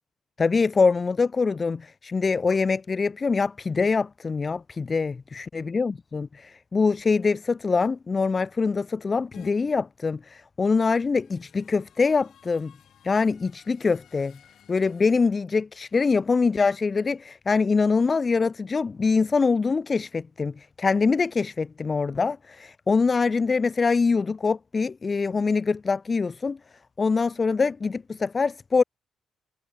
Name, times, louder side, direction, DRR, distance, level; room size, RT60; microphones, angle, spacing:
voice 1, 0.4-12.7 13.0-14.4 14.7-26.6 27.0-28.8, left 4 dB, 35° left, 0.5 m, -24 dB
sound 1, 9.3-9.5 10.9-15.3, left 10 dB, 65° left, 2.1 m, -53 dB
cardioid pair, 90°, 0 cm